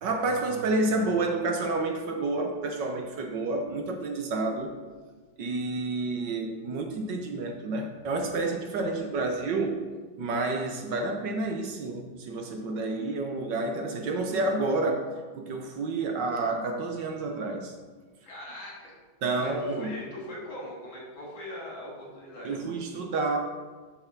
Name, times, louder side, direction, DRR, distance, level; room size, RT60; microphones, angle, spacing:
voice 1, 0.0-4.7 5.4-9.8 10.2-17.7 19.2-19.9 22.4-23.4, right 3 dB, 65° right, 4 dB, 1.5 m, -29 dB
voice 2, 18.3-19.0 19.4-22.5, left 1 dB, 70° left, -3 dB, 3.4 m, -41 dB
8.2 x 7.1 x 6.0 m, 1.4 s
omnidirectional pair, 2.3 m